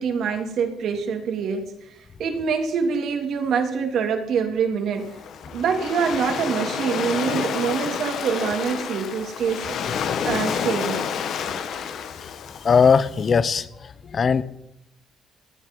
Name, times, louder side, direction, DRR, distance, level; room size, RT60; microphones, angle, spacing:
voice 1, 0.0-1.9 2.2-5.1 5.5-9.8 10.2-11.0, right 6 dB, 75° right, 4 dB, 3.2 m, -25 dB
Waves surf, 5.0-13.2, left 7 dB, 70° left, 1.6 m, -29 dB
voice 2, 12.6-14.4, left 6 dB, 45° left, 15 dB, 1.0 m, -19 dB
18.5 x 10.0 x 5.5 m, 0.82 s
cardioid pair, 90°, 0 cm